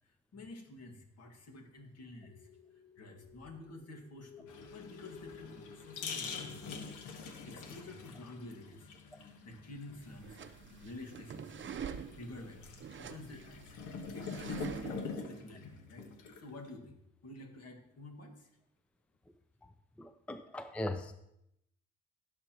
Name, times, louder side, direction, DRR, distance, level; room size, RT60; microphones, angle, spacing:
voice 1, 0.0-2.5 3.0-6.8 7.4-10.4 10.8-13.8 14.1-18.5, left 2 dB, 55° left, 3 dB, 2.0 m, -50 dB
sound 1, 2.2-8.7, left 6 dB, 35° left, 3.0 m, -57 dB
sound 2, 4.5-16.7, left 5 dB, 90° left, 1.4 m, -45 dB
sound 3, 10.0-15.1, right 7 dB, 40° right, 0.6 m, -46 dB
voice 2, 20.0-21.1, left 1 dB, 5° left, 9 dB, 0.5 m, -40 dB
15.5 x 6.9 x 3.0 m, 0.80 s
cardioid pair, 90°, 30 cm